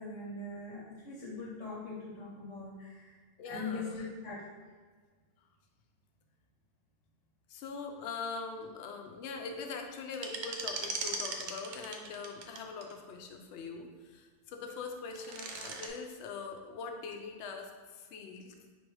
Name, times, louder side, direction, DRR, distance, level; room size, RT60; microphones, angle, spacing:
voice 1, 0.0-3.1 3.5-4.4, left 3 dB, 90° left, -6 dB, 1.3 m, -41 dB
voice 2, 3.4-4.1 7.5-18.5, left 4 dB, 70° left, 3 dB, 0.8 m, -42 dB
sound 1, 10.1-12.9 15.0-15.9, right 4 dB, 75° right, 0.9 m, -38 dB
4.0 x 2.6 x 4.6 m, 1.5 s
omnidirectional pair, 1.3 m